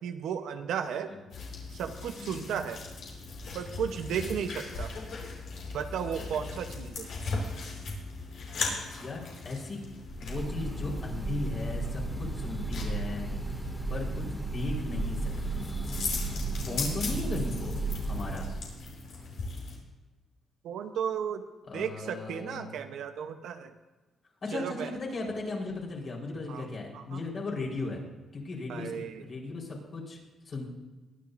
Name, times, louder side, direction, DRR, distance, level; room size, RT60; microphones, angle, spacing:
voice 1, 0.0-1.1 1.7-2.8 3.5-4.9 5.7-7.1 20.6-21.4 21.7-23.7 24.5-24.9 26.5-26.6 26.9-27.2 28.7-29.2, right 8 dB, 75° right, 8 dB, 0.9 m, -34 dB
sound 1, 1.3-19.8, left 3 dB, 70° left, 4.2 m, -39 dB
voice 2, 2.1-2.4 4.1-4.3 9.0-9.8 10.2-13.3 13.9-16.1 16.5-18.5 21.7-22.7 24.4-28.0 28.3-30.2 30.4-30.6, left 3 dB, 45° left, -1 dB, 4.2 m, -37 dB
Breathing / Bird, 10.1-18.6, right 2 dB, 5° left, 2.2 m, -34 dB
22.0 x 10.5 x 2.6 m, 1.2 s
cardioid pair, 90°, 0 cm